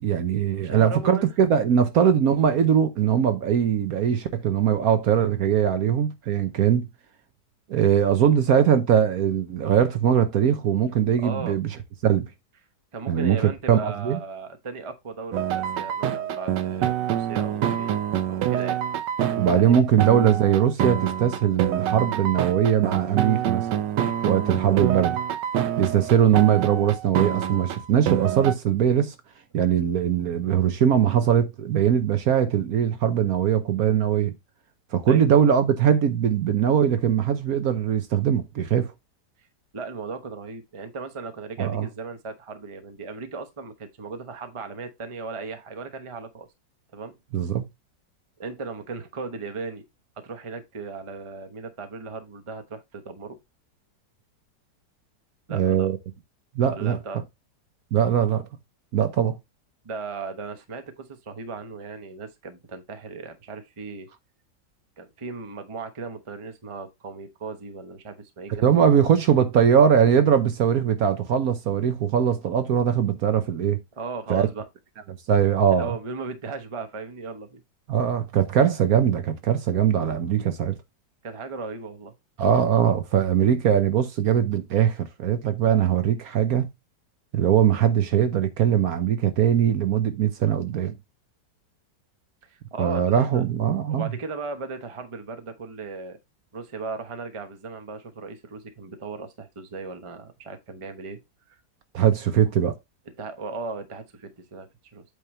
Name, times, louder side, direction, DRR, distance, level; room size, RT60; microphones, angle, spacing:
voice 1, 0.0-6.9 7.7-11.7 12.0-12.3 13.1-13.4 13.7-14.2 19.4-23.7 24.2-25.2 25.8-29.1 29.5-34.3 34.9-38.9 41.6-41.9 47.3-47.7 55.5-56.0 56.6-57.0 57.9-58.5 58.9-59.4 68.5-73.8 74.3-74.5 75.3-76.0 77.9-80.8 82.4-86.7 87.3-90.9 92.8-94.1 101.9-102.7, right 9 dB, 65° right, 1.1 m, -21 dB
voice 2, 0.6-1.3 11.2-11.6 12.9-18.8 19.5-19.8 24.7-24.8 35.1-35.3 39.7-46.5 46.9-47.1 48.4-49.8 50.2-53.4 55.5-55.9 56.7-57.2 59.8-64.1 65.0-68.8 74.0-74.7 75.7-77.6 81.2-82.1 92.5-93.4 93.9-96.2 96.5-101.2 101.5-101.6 103.2-105.0, right 4 dB, 25° right, 0.7 m, -36 dB
sound 1, 15.3-28.5, right 10 dB, 85° right, 1.5 m, -26 dB
8.4 x 3.5 x 4.2 m
omnidirectional pair, 1.9 m